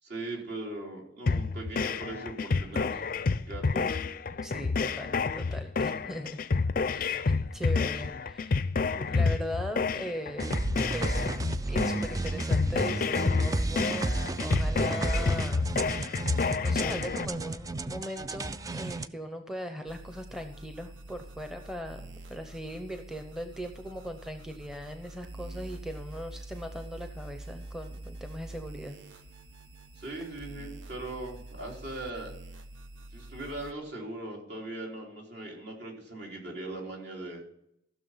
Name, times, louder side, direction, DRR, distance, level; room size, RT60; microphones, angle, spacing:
voice 1, 0.0-3.0 3.5-4.0 30.0-32.3 33.1-37.4, right 2 dB, 60° right, -1 dB, 3.4 m, -39 dB
sound 1, 1.3-17.3, left 4 dB, 45° left, 0.5 m, -29 dB
voice 2, 4.4-6.4 6.9-8.6 9.0-10.6 10.9-11.3 11.6-15.7 16.3-29.0, equal, 5° right, 5 dB, 0.8 m, -39 dB
sound 2, 10.4-19.1, right 2 dB, 20° right, 0.3 m, -32 dB
sound 3, 19.9-33.7, right 2 dB, 85° right, 0.9 m, -46 dB
15.0 x 6.6 x 5.6 m, 0.75 s
head